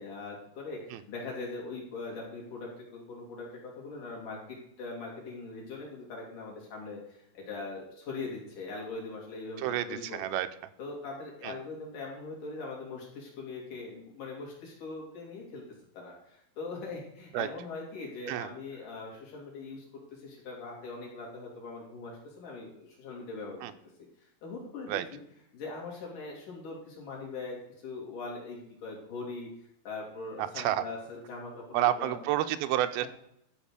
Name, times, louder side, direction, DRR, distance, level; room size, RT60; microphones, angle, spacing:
voice 1, 0.0-10.4 10.8-15.6 15.9-19.8 20.1-23.6 24.4-25.2 25.5-29.5 29.8-32.2, left 3 dB, 60° left, -2 dB, 4.4 m, -41 dB
voice 2, 9.6-10.5 11.4-11.5 17.3-17.5 18.3-18.5 23.6-23.7 24.9-25.0 30.4-30.8 31.7-33.1, right 13 dB, 85° right, 11 dB, 2.5 m, -29 dB
13.0 x 5.3 x 6.6 m, 0.78 s
omnidirectional pair, 4.3 m